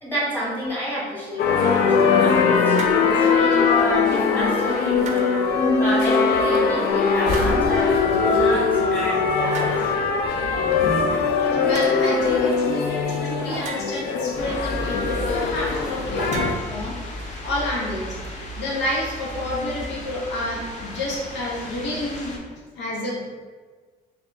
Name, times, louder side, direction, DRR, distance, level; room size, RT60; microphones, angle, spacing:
voice 1, 0.0-5.4 5.8-9.7 12.1-12.2, left 1 dB, 10° left, -7 dB, 1.3 m, -29 dB
sound 1, 1.4-16.5, left 5 dB, 70° left, 0.5 m, -21 dB
sound 2, 2.7-3.1 5.0-5.6 7.2-7.9 9.5-9.9 11.7-12.0 13.5-14.2 16.1-17.3, right 3 dB, 45° right, 0.5 m, -35 dB
voice 2, 11.5-16.9 17.4-18.2 18.6-22.3 22.7-23.2, left 1 dB, 90° left, -3 dB, 1.0 m, -29 dB
sound 3, 14.3-22.4, equal, 45° left, 0.8 m, -35 dB
4.1 x 2.7 x 2.7 m, 1.5 s
cardioid pair, 110°, 17 cm